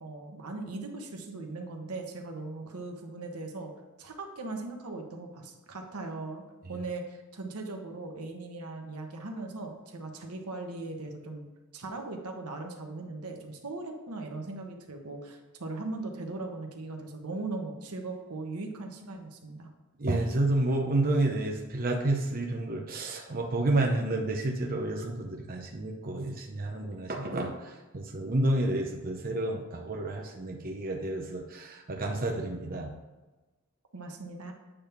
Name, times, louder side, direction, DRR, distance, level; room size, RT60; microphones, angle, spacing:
voice 1, 0.0-3.7 4.0-6.4 6.7-11.4 11.7-19.7 33.9-34.5, right 3 dB, 85° right, 2 dB, 1.2 m, -39 dB
voice 2, 20.0-32.9, right 2 dB, 40° right, 1 dB, 0.7 m, -30 dB
8.6 x 3.5 x 5.8 m, 1.2 s
head